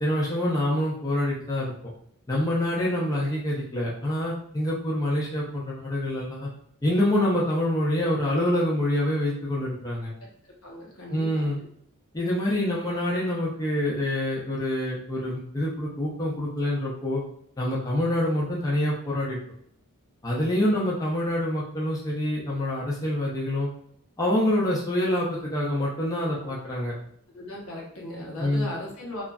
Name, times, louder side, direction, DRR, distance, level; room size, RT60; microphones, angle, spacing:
voice 1, 0.0-1.9 2.3-6.5 6.8-10.1 11.1-11.6 12.1-17.2 17.6-19.4 20.2-23.7 24.2-26.9 28.4-28.7, left 1 dB, 15° left, -6 dB, 0.6 m, -26 dB
voice 2, 10.6-11.7 20.7-20.8 26.2-26.5 27.3-29.2, left 1 dB, 70° left, -3 dB, 0.9 m, -38 dB
2.9 x 2.5 x 2.2 m, 0.66 s
head